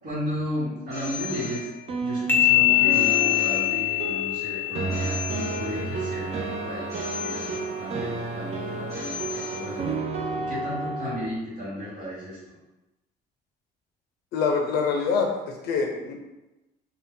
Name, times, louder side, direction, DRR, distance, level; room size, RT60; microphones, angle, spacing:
voice 1, 0.0-1.7 2.0-9.9 10.3-12.5, left 1 dB, 65° right, -8 dB, 1.2 m, -34 dB
Telephone, 0.9-2.2 2.9-4.2 4.9-6.2 6.9-8.2 8.9-10.1, left 5 dB, 20° right, 0.8 m, -38 dB
sound 1, 1.2-11.3, right 3 dB, 40° right, 0.4 m, -32 dB
sound 2, 2.3-5.8, left 15 dB, 10° left, 0.5 m, -23 dB
voice 2, 14.3-15.3 15.6-16.1, left 5 dB, 75° left, 1 dB, 0.5 m, -24 dB
2.6 x 2.2 x 3.5 m, 1.0 s
cardioid pair, 110°, 17 cm